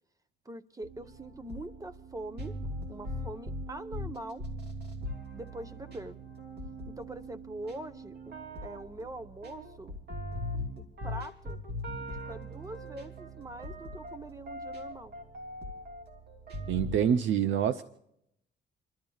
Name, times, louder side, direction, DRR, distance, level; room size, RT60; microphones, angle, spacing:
voice 1, 0.4-2.6 2.9-4.4 5.3-6.2 6.9-10.0 10.8-11.7 12.0-15.1, right 1 dB, 15° right, 10 dB, 1.0 m, -43 dB
sound 1, 0.8-17.0, equal, 55° right, 3.1 m, -41 dB
voice 2, 16.7-17.8, right 9 dB, 75° right, 11 dB, 0.7 m, -26 dB
29.0 x 12.5 x 2.4 m, 0.77 s
cardioid pair, 90°, 20 cm